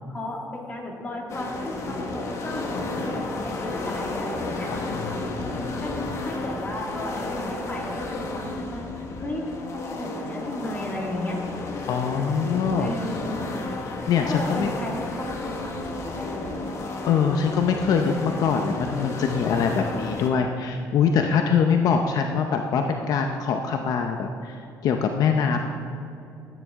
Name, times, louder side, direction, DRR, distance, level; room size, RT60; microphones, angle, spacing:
voice 1, 0.1-4.7 5.8-8.9 9.2-11.4 12.8-13.5 14.2-16.6, left 1 dB, 20° left, -1 dB, 1.9 m, -34 dB
sound 1, 1.3-20.3, left 2 dB, 45° left, 1.5 m, -32 dB
voice 2, 4.7-5.8 11.9-12.9 13.9-14.7 17.0-25.6, left 6 dB, 65° left, 4 dB, 0.7 m, -24 dB
13.0 x 9.4 x 3.6 m, 2.6 s
cardioid pair, 120°, 7 cm